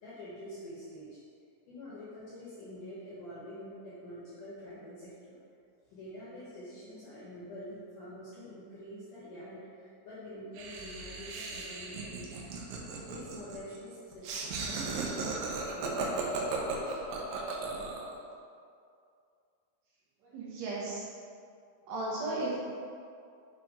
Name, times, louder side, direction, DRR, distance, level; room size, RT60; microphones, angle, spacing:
voice 1, 0.0-1.2 1.7-5.4 5.9-12.5 13.0-15.3 15.7-17.1, equal, 70° left, -9 dB, 2.1 m, -46 dB
Laughter, 10.6-18.1, right 3 dB, 90° right, 3.3 m, -36 dB
voice 2, 20.2-21.1 21.9-22.6, right 2 dB, 70° right, -6 dB, 3.2 m, -35 dB
7.5 x 4.5 x 5.0 m, 2.4 s
omnidirectional pair, 5.4 m